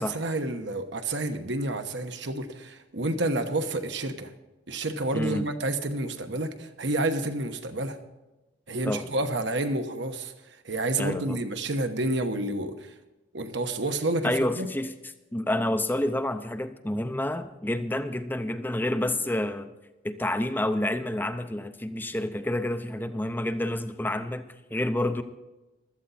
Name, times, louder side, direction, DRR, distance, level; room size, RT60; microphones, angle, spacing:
voice 1, 0.0-4.3 4.7-8.0 8.7-12.9 13.3-14.7, right 2 dB, 60° right, 7 dB, 1.2 m, -29 dB
voice 2, 5.1-5.4 8.8-9.1 11.0-11.4 14.2-14.9 15.3-19.7 20.0-25.2, left 1 dB, 10° left, 10 dB, 0.6 m, -29 dB
16.0 x 13.0 x 4.2 m, 1.0 s
head